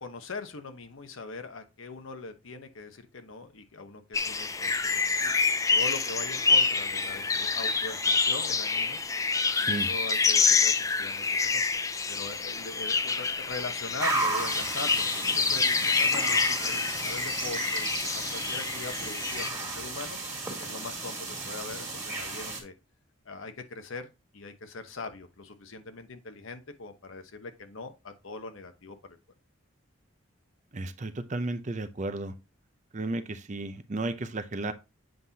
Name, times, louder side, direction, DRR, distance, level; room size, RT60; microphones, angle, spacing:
voice 1, 0.0-5.3 5.7-9.0 9.6-11.6 12.1-20.2 20.6-22.7 23.2-29.2, left 3 dB, 70° left, 0.9 m, -41 dB
sound 1, 4.1-19.5, left 4 dB, 15° left, 0.3 m, -27 dB
sound 2, 14.0-22.6, right 3 dB, 15° right, 1.9 m, -34 dB
voice 2, 30.7-32.3 32.9-34.7, right 2 dB, 35° right, 0.6 m, -33 dB
7.8 x 5.5 x 2.8 m
head